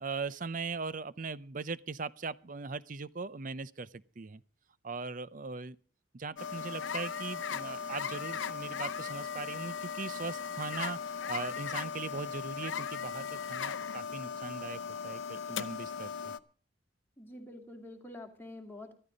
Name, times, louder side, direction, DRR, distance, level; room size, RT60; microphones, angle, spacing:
voice 1, 0.0-4.4 4.8-5.8 6.1-16.3, right 4 dB, 40° right, 0.6 m, -40 dB
sound 1, 6.4-16.4, left 7 dB, 75° left, 0.7 m, -38 dB
voice 2, 17.2-18.9, left 1 dB, 10° left, 2.1 m, -47 dB
13.5 x 13.5 x 5.1 m
head